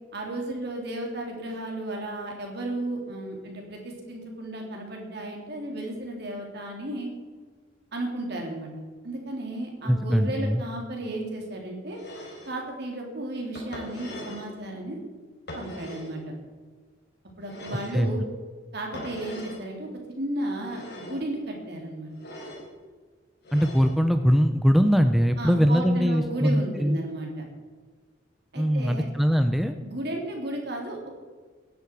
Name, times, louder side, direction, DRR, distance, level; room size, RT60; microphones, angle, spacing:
voice 1, 0.1-7.1 7.9-8.7 9.0-12.0 12.5-15.0 15.5-16.2 17.4-18.2 18.7-22.1 25.4-27.3 28.5-29.1 29.8-31.2, right 1 dB, 55° right, 0 dB, 3.4 m, -34 dB
voice 2, 9.8-10.6 17.9-18.1 23.5-27.0 28.6-29.8, equal, ahead, 7 dB, 0.5 m, -22 dB
sound 1, 11.9-12.6 13.6-14.5 15.5-16.2 17.4-18.1 18.9-19.6 20.6-21.3 22.1-22.7 23.4-24.0, equal, 55° left, 3.8 m, -41 dB
18.5 x 10.5 x 4.8 m, 1.5 s
head